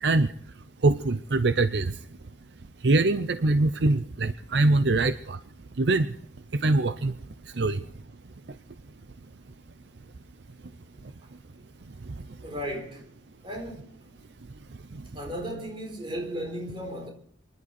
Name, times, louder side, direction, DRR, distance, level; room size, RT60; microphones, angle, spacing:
voice 1, 0.8-1.9 2.8-5.4 5.8-6.1 6.5-7.1 7.6-7.8, right 2 dB, 70° right, 0.6 m, -23 dB
voice 2, 12.4-13.1 13.4-14.0 15.1-17.1, equal, 30° right, 4.3 m, -35 dB
25.5 x 11.5 x 4.3 m
head